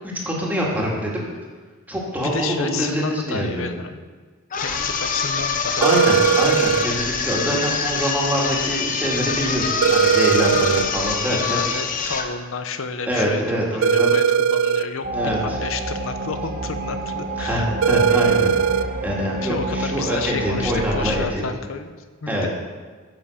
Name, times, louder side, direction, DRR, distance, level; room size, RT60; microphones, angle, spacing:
voice 1, 0.3-1.2 1.9-3.7 5.8-11.6 13.1-14.1 15.1-15.6 17.4-18.5 19.0-21.4 22.3-22.5, equal, 10° right, -4 dB, 2.0 m, -24 dB
voice 2, 1.9-4.0 4.6-6.7 10.5-10.8 11.3-17.7 19.4-22.5, left 5 dB, 75° left, 8 dB, 0.7 m, -31 dB
sound 1, 4.5-12.3, left 5 dB, 40° left, 0.8 m, -25 dB
sound 2, 5.8-6.9 9.8-10.9 13.8-14.9 17.8-18.9, right 7 dB, 70° right, 0.4 m, -18 dB
sound 3, 15.0-21.3, right 2 dB, 40° right, 0.8 m, -29 dB
10.5 x 5.7 x 6.5 m, 1.4 s
head